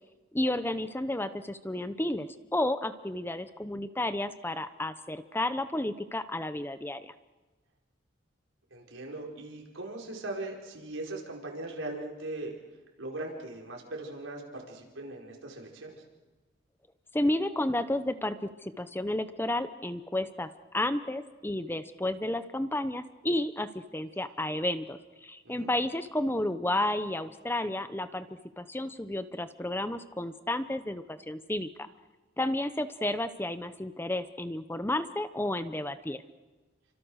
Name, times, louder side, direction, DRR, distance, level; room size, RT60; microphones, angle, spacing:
voice 1, 0.3-7.1 17.1-20.5 20.7-28.3 28.6-31.9 32.4-36.2, left 1 dB, 10° left, 11 dB, 0.8 m, -32 dB
voice 2, 8.7-12.5 13.0-16.0 25.4-25.7, right 2 dB, 85° right, 0 dB, 5.1 m, -39 dB
29.5 x 25.0 x 6.4 m, 1.2 s
head